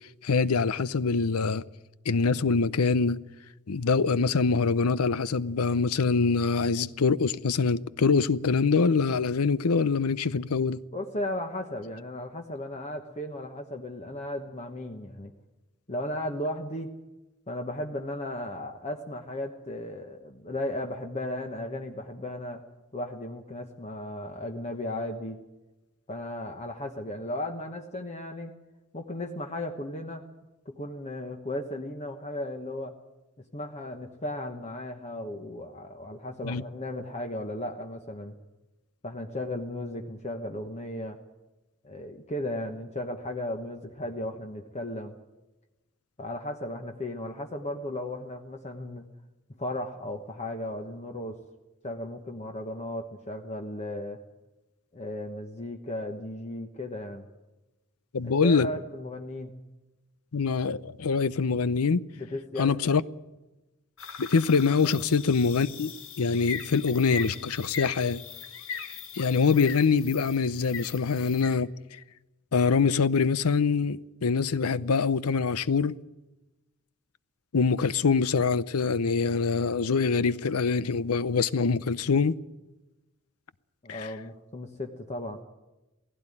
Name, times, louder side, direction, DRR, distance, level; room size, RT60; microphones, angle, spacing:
voice 1, 0.2-1.6 2.1-3.2 3.7-10.8 36.4-36.6 58.1-58.7 60.3-62.0 62.6-63.0 64.2-65.9 66.2-68.2 69.1-71.7 72.5-76.0 77.5-82.3 83.9-84.1, left 5 dB, 90° left, 0.7 m, -24 dB
voice 2, 10.9-15.3 15.9-16.9 17.5-22.6 22.9-25.4 26.1-28.5 28.9-30.2 30.6-32.9 33.5-38.3 39.0-41.2 41.8-45.1 46.2-49.1 49.6-51.4 51.8-54.2 54.9-57.3 58.4-59.5 62.2-62.9 64.8-64.9 83.8-85.4, left 1 dB, 30° left, 1.2 m, -35 dB
sound 1, 64.0-71.6, left 7 dB, 65° left, 1.7 m, -40 dB
17.5 x 16.0 x 9.9 m
head